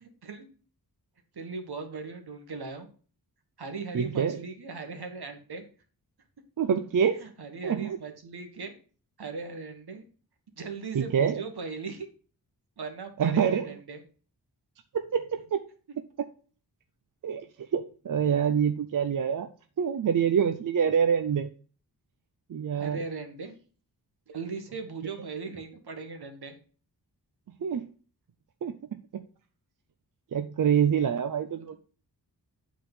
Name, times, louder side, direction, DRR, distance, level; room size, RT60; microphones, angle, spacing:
voice 1, 0.0-0.5 1.3-2.9 3.6-5.6 7.2-8.7 9.2-10.0 10.6-12.1 12.8-14.0 22.7-23.6 24.3-26.6, right 4 dB, 70° right, 6 dB, 1.5 m, -38 dB
voice 2, 3.9-4.4 6.6-7.2 7.6-8.0 10.9-11.4 13.2-13.7 14.9-15.6 17.2-19.5 19.8-21.5 22.5-23.0 27.6-27.8 28.6-29.2 30.3-31.7, right 7 dB, 55° right, 8 dB, 0.5 m, -26 dB
8.5 x 3.8 x 5.4 m, 0.40 s
wide cardioid pair, 80°, 40 cm